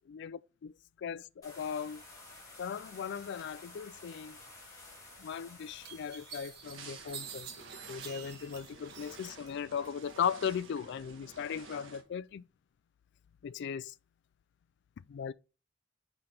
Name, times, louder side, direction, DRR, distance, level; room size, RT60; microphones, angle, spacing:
voice 1, 0.1-0.7 1.0-2.0 2.6-4.4 5.2-7.5 7.9-12.4 13.4-13.9 15.1-15.3, left 7 dB, 60° left, 0.3 m, -37 dB
sound 1, 1.4-9.5, left 2 dB, 20° left, 2.9 m, -54 dB
sound 2, 5.1-5.2 5.8-9.5 9.8-10.6, right 7 dB, 55° right, 1.2 m, -48 dB
sound 3, 6.6-12.0, right 3 dB, 70° right, 1.3 m, -51 dB
5.9 x 5.0 x 4.2 m
head